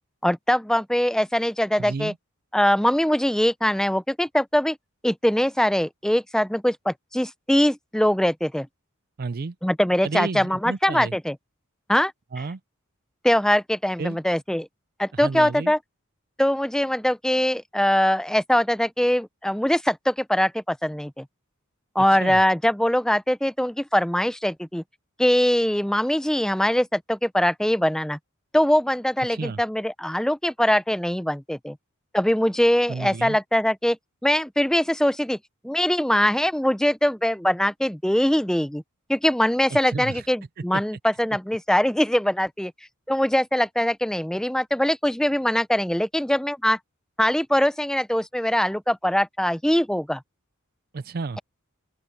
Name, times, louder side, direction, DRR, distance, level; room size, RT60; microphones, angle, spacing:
voice 1, 0.2-2.1 2.5-4.8 5.0-8.7 9.6-11.3 11.9-12.1 13.2-14.7 15.0-15.8 16.4-21.2 22.0-24.8 25.2-28.2 28.5-31.8 32.1-34.0 34.2-35.4 35.6-38.8 39.1-42.7 43.1-46.8 47.2-50.2, equal, 5° left, 0.5 m, -22 dB
voice 2, 1.8-2.2 9.2-9.6 10.0-11.1 12.3-12.6 14.0-14.2 15.1-15.7 22.2-22.4 29.3-29.6 32.9-33.4 39.7-40.2 40.7-40.8 50.9-51.4, right 4 dB, 45° right, 0.5 m, -31 dB
open air
head